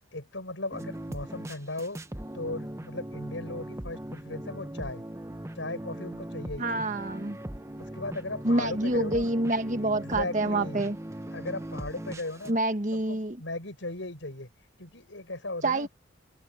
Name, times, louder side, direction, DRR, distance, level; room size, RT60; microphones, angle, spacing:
voice 1, 0.1-2.0 2.3-5.0 5.5-7.0 7.9-9.3 9.8-10.9 11.3-12.6 12.9-14.5 14.8-15.9, left 2 dB, 75° left, 6.4 m, -37 dB
sound 1, 0.7-12.5, right 1 dB, 15° right, 0.8 m, -40 dB
voice 2, 6.6-7.4 8.4-11.0 12.5-13.4 15.6-15.9, right 2 dB, 40° right, 1.5 m, -27 dB
head